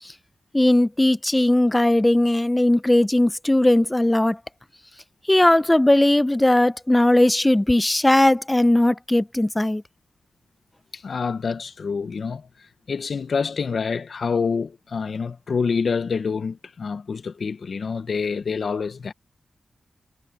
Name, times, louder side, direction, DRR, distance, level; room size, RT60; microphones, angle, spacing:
voice 1, 0.5-4.4 5.3-9.8, left 1 dB, 15° left, 0.6 m, -18 dB
voice 2, 10.9-12.5 12.9-19.1, left 5 dB, 65° left, 1.0 m, -27 dB
cardioid pair, 65°, 0 cm